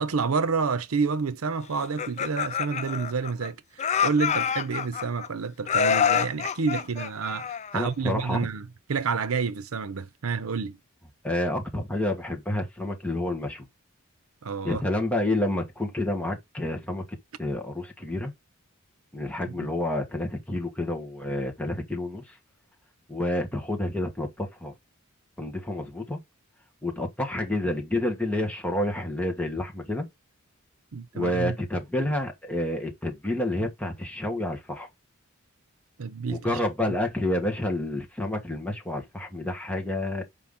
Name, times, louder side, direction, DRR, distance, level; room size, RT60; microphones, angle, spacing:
voice 1, 0.0-10.8 14.4-14.8 30.9-31.6 36.0-36.6 36.9-37.0, right 5 dB, 80° right, 0.7 m, -29 dB
Laughter, 1.8-3.5 3.8-5.3 5.7-7.9, left 7 dB, 35° left, 0.4 m, -27 dB
voice 2, 7.7-8.5 11.2-13.7 14.6-17.0 17.4-18.3 19.1-22.4 23.1-24.7 25.4-26.2 26.8-30.1 31.1-34.9 36.3-40.2, left 1 dB, 5° left, 1.4 m, -29 dB
5.6 x 5.1 x 3.7 m
head